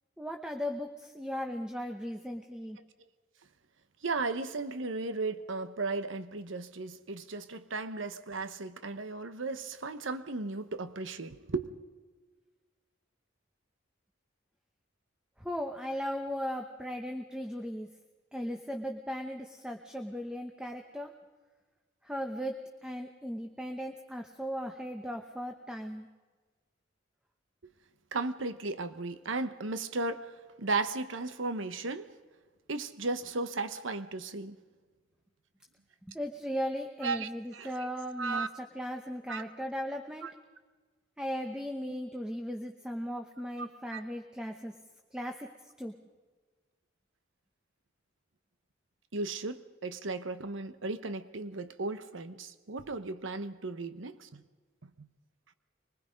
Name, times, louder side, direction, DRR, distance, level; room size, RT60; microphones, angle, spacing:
voice 1, 0.2-2.8 15.4-17.9 18.3-21.1 22.0-26.1 36.1-40.3 41.2-44.7 45.1-45.4 45.8-45.9, equal, 5° right, 0.9 m, -37 dB
voice 2, 4.0-11.7 28.1-32.1 32.7-34.6 37.0-37.9 38.2-38.5 39.3-39.4 40.2-40.3 43.6-44.0 49.1-54.4 55.0-55.1, right 3 dB, 75° right, 1.0 m, -35 dB
25.0 x 20.5 x 5.2 m
head